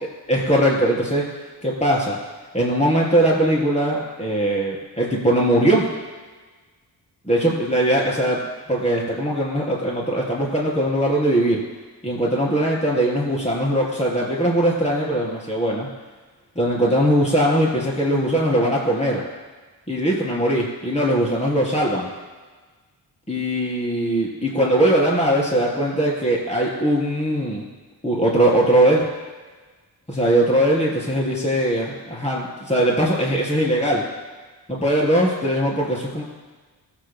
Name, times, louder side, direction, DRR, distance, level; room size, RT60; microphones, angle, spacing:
voice 1, 0.3-1.3 1.6-2.2 2.5-5.9 7.2-8.4 8.7-11.6 12.0-15.9 16.6-19.2 19.9-22.1 23.3-27.6 28.0-29.0 30.1-34.0 34.7-36.2, right 1 dB, 15° left, -4 dB, 3.6 m, -20 dB
24.0 x 8.5 x 2.2 m, 1.3 s
cardioid pair, 50°, 44 cm